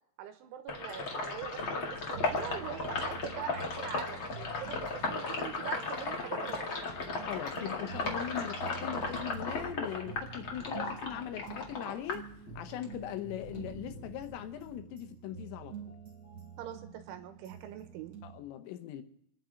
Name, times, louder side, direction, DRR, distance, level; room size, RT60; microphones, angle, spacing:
voice 1, 0.2-6.8 16.6-18.2, right 10 dB, 80° right, 8 dB, 3.4 m, -43 dB
Sink (filling or washing), 0.7-12.9 13.3-14.7, left 3 dB, 65° left, 1.2 m, -36 dB
sound 1, 1.6-18.4, right 7 dB, 25° right, 3.3 m, -48 dB
voice 2, 7.3-12.2 12.6-16.0 18.2-19.0, left 11 dB, 85° left, 8 dB, 3.6 m, -40 dB
30.0 x 10.5 x 3.9 m, 0.66 s
omnidirectional pair, 5.8 m